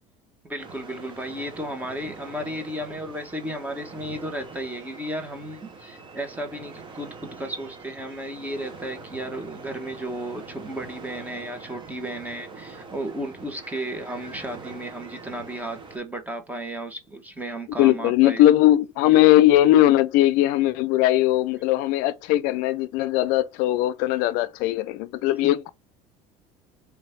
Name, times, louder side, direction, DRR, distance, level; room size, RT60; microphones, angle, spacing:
voice 1, 0.4-18.4 25.4-25.5, right 1 dB, 10° right, 1.3 m, -34 dB
sound 1, 0.6-16.0, right 4 dB, 30° right, 1.3 m, -43 dB
voice 2, 17.8-25.7, left 14 dB, 65° left, 0.5 m, -19 dB
3.4 x 3.0 x 4.4 m
supercardioid pair, 90°, 15 cm